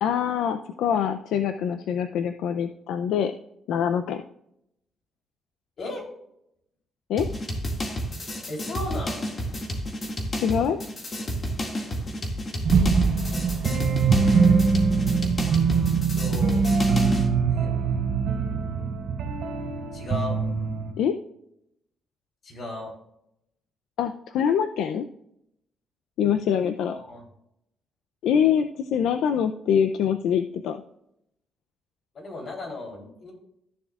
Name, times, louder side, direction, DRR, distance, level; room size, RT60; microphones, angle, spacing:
voice 1, 0.0-3.3 3.7-4.2 7.1-7.3 10.4-10.8 21.0-21.1 24.0-25.1 26.2-26.9 28.2-30.8, left 8 dB, 80° left, 9 dB, 0.5 m, -24 dB
voice 2, 5.8-6.1 8.5-9.3 14.1-14.6 16.2-16.6 17.5-17.7 19.9-20.4 22.4-22.9 26.6-27.3 32.1-33.3, left 2 dB, 55° left, 0 dB, 3.4 m, -35 dB
sound 1, 7.2-17.3, equal, 35° left, 2.1 m, -31 dB
sound 2, 12.6-20.9, right 5 dB, 65° right, 3.4 m, -23 dB
13.5 x 7.2 x 2.4 m, 0.78 s
cardioid pair, 90°, 0 cm